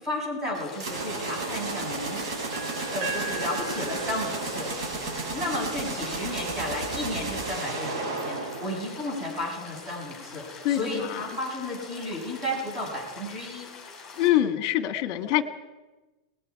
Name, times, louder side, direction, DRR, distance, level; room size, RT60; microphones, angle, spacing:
voice 1, 0.0-2.2 2.9-4.7 5.3-13.7, left 1 dB, 15° right, -1 dB, 6.2 m, -33 dB
sound 1, 0.5-14.3, left 4 dB, 15° left, 6.0 m, -45 dB
sound 2, 0.8-9.4, right 3 dB, 70° right, 7.5 m, -33 dB
sound 3, 2.5-6.4, right 2 dB, 40° right, 1.2 m, -39 dB
voice 2, 10.6-11.2 14.2-15.4, left 12 dB, 40° left, 10 dB, 1.5 m, -24 dB
28.0 x 20.0 x 4.7 m, 1.1 s
supercardioid pair, 165°, 3 cm